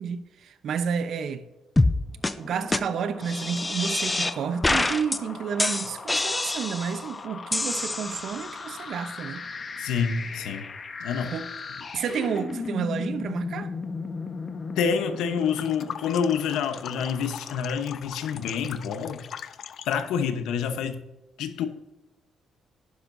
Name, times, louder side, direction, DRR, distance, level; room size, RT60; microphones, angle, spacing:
voice 1, 0.0-1.5 2.4-9.5 11.3-11.5 11.9-13.7, right 7 dB, 65° right, 0.9 m, -30 dB
sound 1, 1.8-2.0 2.2-2.3 2.7-2.8 3.2-4.3 4.6-5.2 5.6-7.0 7.5-8.5, left 2 dB, 15° left, 0.7 m, -25 dB
sound 2, 2.2-18.6, left 4 dB, 40° left, 1.2 m, -38 dB
voice 2, 9.8-10.7 11.0-11.3 11.9-12.0 14.8-19.5 19.9-21.0 21.4-21.7, left 7 dB, 90° left, 1.0 m, -28 dB
sound 3, 15.4-20.2, left 8 dB, 60° left, 0.5 m, -41 dB
11.5 x 10.5 x 2.7 m
cardioid pair, 90°, 0 cm